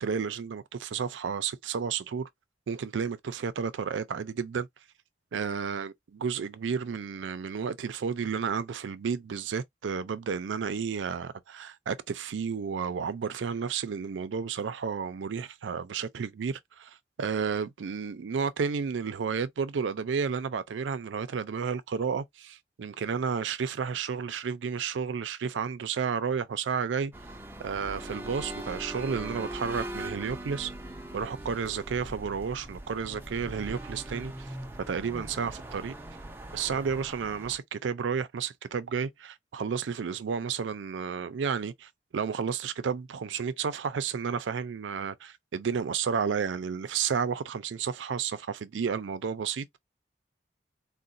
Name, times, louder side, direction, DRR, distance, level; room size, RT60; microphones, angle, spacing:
voice 1, 0.0-2.3 2.7-4.7 5.3-27.1 27.6-30.7 31.1-34.5 34.9-35.9 36.5-49.8, right 6 dB, 90° right, 0.4 m, -32 dB
sound 1, 27.1-37.6, right 1 dB, 10° right, 0.5 m, -41 dB
3.8 x 2.1 x 2.5 m
head